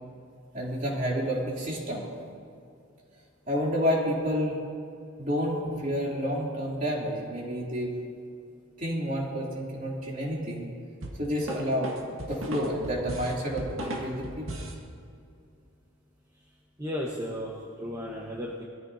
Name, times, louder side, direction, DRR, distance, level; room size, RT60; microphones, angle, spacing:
voice 1, 0.5-2.1 3.5-4.6 5.2-7.9 8.8-10.7 11.2-14.5, equal, 40° right, -4 dB, 2.9 m, -29 dB
sound 1, 11.0-14.8, right 1 dB, 75° right, 1.8 m, -37 dB
voice 2, 16.8-18.6, left 1 dB, 15° right, -3 dB, 1.1 m, -34 dB
21.0 x 14.0 x 2.8 m, 2.4 s
head